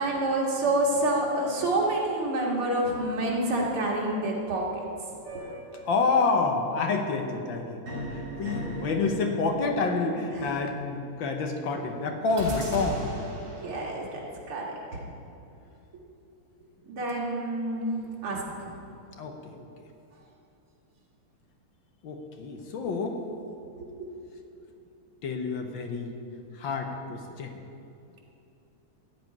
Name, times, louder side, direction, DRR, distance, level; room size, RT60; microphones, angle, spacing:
voice 1, 0.0-4.8 13.4-14.2 14.5-15.0 16.9-17.9 18.2-18.6 23.7-24.2, right 1 dB, 75° right, -2 dB, 2.8 m, -28 dB
sound 1, 5.3-6.3 7.9-10.5 12.4-14.1, equal, 60° right, 3.1 m, -37 dB
voice 2, 5.8-7.8 8.1-13.0 19.2-19.7 22.0-23.2 25.2-26.1 26.5-27.6, left 4 dB, 65° left, 4 dB, 1.6 m, -28 dB
14.5 x 5.0 x 9.3 m, 2.7 s
omnidirectional pair, 2.4 m